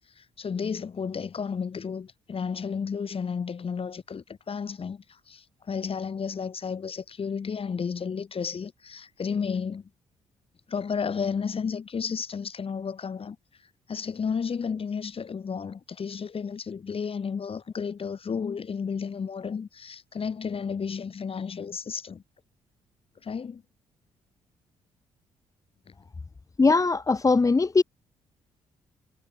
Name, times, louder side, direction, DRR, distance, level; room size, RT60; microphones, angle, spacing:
voice 1, 0.2-9.9 10.7-13.4 13.9-22.2 23.2-23.6 25.9-26.0, left 6 dB, 45° left, 4.3 m, -32 dB
voice 2, 26.6-27.8, left 3 dB, 25° left, 1.0 m, -20 dB
supercardioid pair, 55°, 13 cm